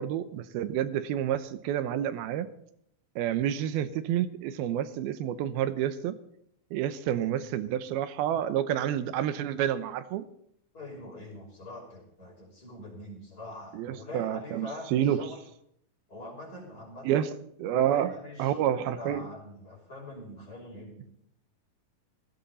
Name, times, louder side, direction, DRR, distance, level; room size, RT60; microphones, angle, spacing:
voice 1, 0.0-2.5 3.2-6.2 6.7-10.2 13.7-15.3 17.0-17.3 17.6-18.1 18.4-19.3, right 10 dB, 80° right, 12 dB, 2.8 m, -29 dB
voice 2, 10.7-15.4 16.1-17.2 17.9-21.0, left 1 dB, 25° left, -1 dB, 6.1 m, -43 dB
18.0 x 16.5 x 4.2 m, 0.72 s
omnidirectional pair, 4.4 m